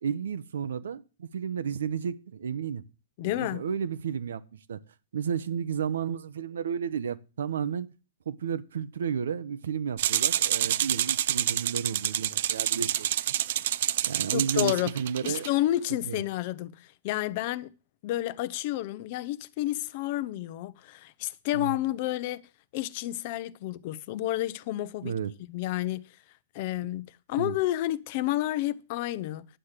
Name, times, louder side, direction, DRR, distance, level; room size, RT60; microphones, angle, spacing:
voice 1, 0.0-2.8 3.2-4.4 4.7-4.8 5.1-7.9 8.3-13.1 14.0-15.5 16.0-16.2 21.5-21.7 25.0-25.3 27.4-27.5, right 7 dB, 80° right, 0.9 m, -32 dB
voice 2, 3.2-3.6 14.3-15.0 15.2-17.7 18.0-22.4 22.7-25.1 25.5-26.0 26.5-29.5, left 15 dB, 40° left, 0.6 m, -30 dB
sound 1, 10.0-15.5, right 12 dB, 55° right, 0.5 m, -28 dB
10.0 x 7.4 x 6.7 m
hypercardioid pair, 160°, 0 cm